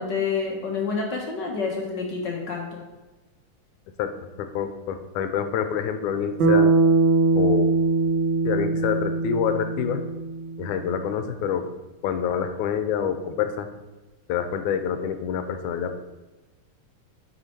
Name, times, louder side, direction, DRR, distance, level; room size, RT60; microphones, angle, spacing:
voice 1, 0.0-2.8, left 5 dB, 55° left, -1 dB, 1.3 m, -28 dB
voice 2, 4.4-6.7 7.4-7.8 8.5-10.0 10.6-11.7 12.0-13.7 14.3-16.0, left 8 dB, 90° left, 8 dB, 2.1 m, -27 dB
Bass guitar, 6.4-10.8, right 3 dB, 60° right, 1.2 m, -21 dB
9.8 x 5.7 x 4.4 m, 1.1 s
omnidirectional pair, 3.5 m